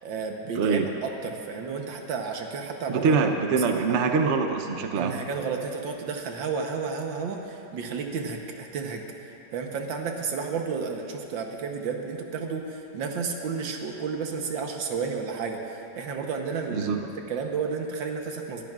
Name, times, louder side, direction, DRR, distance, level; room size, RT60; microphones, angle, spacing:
voice 1, 0.0-3.2 3.6-3.9 4.9-9.1 9.5-18.7, right 5 dB, 85° right, 3 dB, 1.8 m, -32 dB
voice 2, 0.6-0.9 2.9-5.2 16.7-17.0, right 5 dB, 55° right, 4 dB, 0.8 m, -24 dB
21.0 x 13.5 x 2.5 m, 2.9 s
omnidirectional pair, 2.0 m